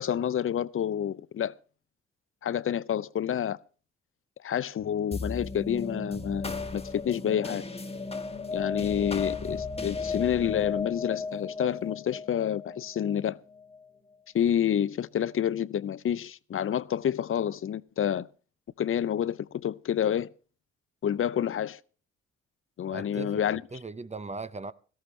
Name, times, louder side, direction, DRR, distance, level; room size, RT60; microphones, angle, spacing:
voice 1, 0.0-1.6 2.4-3.6 4.4-7.6 8.5-13.4 14.3-18.3 18.8-20.3 21.0-21.8 22.8-23.6, left 9 dB, 45° left, 0.6 m, -28 dB
sound 1, 5.1-13.8, left 4 dB, 20° left, 1.3 m, -35 dB
voice 2, 22.9-24.7, right 3 dB, 25° right, 0.7 m, -39 dB
17.5 x 13.5 x 3.3 m
hypercardioid pair, 45°, 29 cm